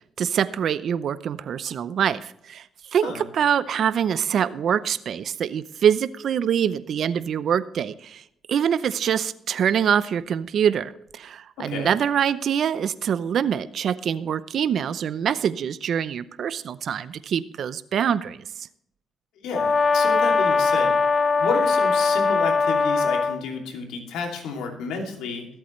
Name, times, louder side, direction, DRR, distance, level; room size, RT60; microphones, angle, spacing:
voice 1, 0.2-2.7 2.9-8.2 8.5-18.4, right 8 dB, 65° right, 15 dB, 0.7 m, -24 dB
voice 2, 11.6-12.0 19.4-21.0 21.3-25.5, left 4 dB, 90° left, 2 dB, 2.7 m, -31 dB
Brass instrument, 19.5-23.4, left 4 dB, 35° left, 1.0 m, -21 dB
22.0 x 8.4 x 3.2 m, 0.75 s
cardioid pair, 90°, 0 cm